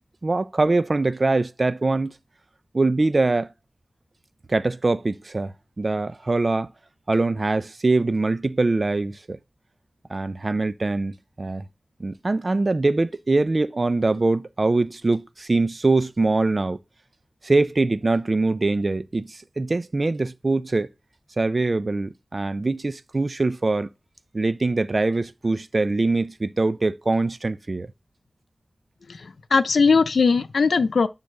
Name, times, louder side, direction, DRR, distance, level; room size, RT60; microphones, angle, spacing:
voice 1, 0.2-2.1 2.7-3.5 4.5-6.7 7.1-9.4 10.1-11.7 12.0-16.8 17.4-20.9 21.4-23.9 24.3-27.9, right 3 dB, 45° right, 0.6 m, -23 dB
voice 2, 29.1-31.1, left 4 dB, 85° left, 0.7 m, -19 dB
10.0 x 4.1 x 6.6 m
wide cardioid pair, 85°, 0 cm